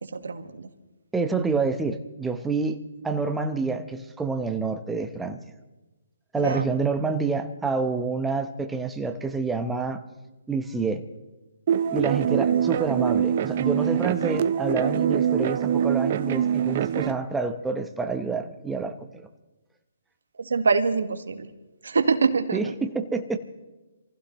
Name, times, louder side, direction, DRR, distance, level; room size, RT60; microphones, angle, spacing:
voice 1, 0.0-0.7 6.3-6.7 12.5-12.6 20.4-21.5 21.8-22.7, right 4 dB, 80° right, 8 dB, 1.6 m, -25 dB
voice 2, 1.1-2.8 3.0-5.4 6.3-10.0 10.5-11.0 11.9-19.3 22.5-23.4, right 4 dB, 5° right, 7 dB, 0.9 m, -28 dB
sound 1, 11.7-17.1, right 8 dB, 45° right, 0.6 m, -24 dB
27.0 x 15.5 x 3.1 m, 1.1 s
hypercardioid pair, 150°, 0 cm